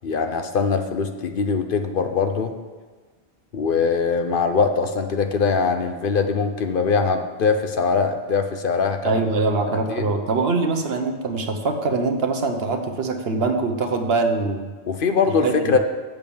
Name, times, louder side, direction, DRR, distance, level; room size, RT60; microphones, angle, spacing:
voice 1, 0.0-2.5 3.5-9.1 9.7-10.1 14.8-15.8, left 5 dB, 60° left, 7 dB, 0.9 m, -22 dB
voice 2, 9.0-14.7 15.4-15.7, right 3 dB, 65° right, 6 dB, 1.2 m, -23 dB
7.9 x 6.9 x 7.0 m, 1.4 s
omnidirectional pair, 1.1 m